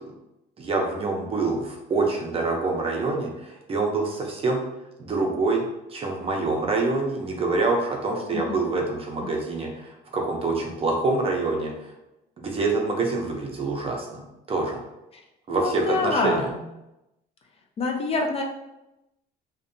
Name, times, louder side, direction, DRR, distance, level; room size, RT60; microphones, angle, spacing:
voice 1, 0.6-4.7 5.0-11.9 12.4-14.2 14.5-14.8 15.5-16.5, right 3 dB, 35° right, 1 dB, 0.6 m, -26 dB
voice 2, 15.5-16.6 17.8-18.4, left 3 dB, 35° left, 2 dB, 0.4 m, -25 dB
2.6 x 2.2 x 2.6 m, 0.92 s
cardioid pair, 110°, 17 cm